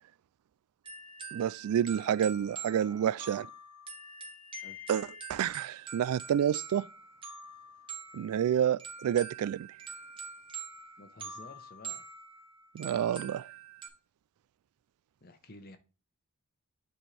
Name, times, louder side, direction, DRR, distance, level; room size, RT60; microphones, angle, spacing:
sound 1, 0.8-13.9, right 4 dB, 25° right, 1.4 m, -45 dB
voice 1, 1.3-3.5 4.9-6.9 8.1-9.7 12.7-13.5, right 9 dB, 90° right, 0.3 m, -29 dB
voice 2, 11.0-12.1 15.2-15.8, left 2 dB, 45° left, 1.0 m, -51 dB
8.7 x 4.3 x 3.3 m
head